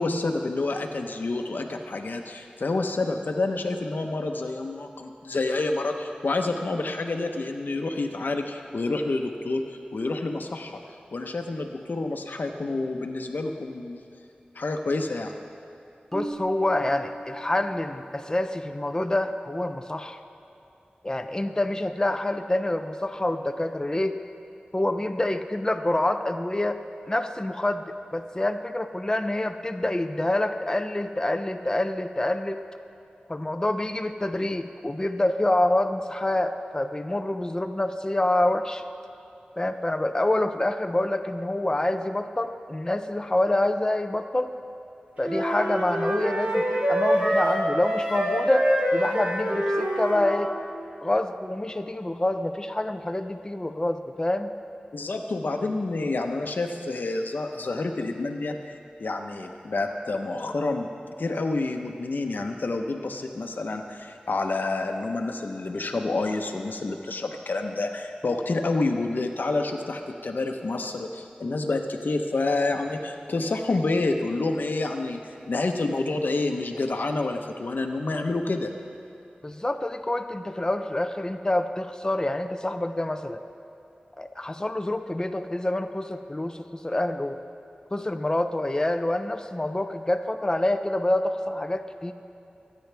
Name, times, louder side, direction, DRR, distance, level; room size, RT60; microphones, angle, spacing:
voice 1, 0.0-9.6 9.9-10.8 11.1-14.0 14.5-15.3 54.9-60.9 61.2-75.2 75.5-78.7, left 2 dB, 75° left, 4 dB, 0.9 m, -28 dB
voice 2, 16.1-20.2 21.0-24.2 24.7-27.8 28.1-32.6 33.3-38.8 39.6-44.5 45.2-50.5 51.0-54.5 79.4-83.4 84.2-87.4 87.9-92.1, left 1 dB, 20° left, 6 dB, 0.5 m, -27 dB
Marimba xylophone, 16.1-18.1, right 2 dB, 5° left, 1.1 m, -39 dB
sound 1, 45.2-50.4, equal, 50° right, 3.2 m, -25 dB
24.5 x 9.5 x 3.4 m, 2.8 s
wide cardioid pair, 65°, 3 cm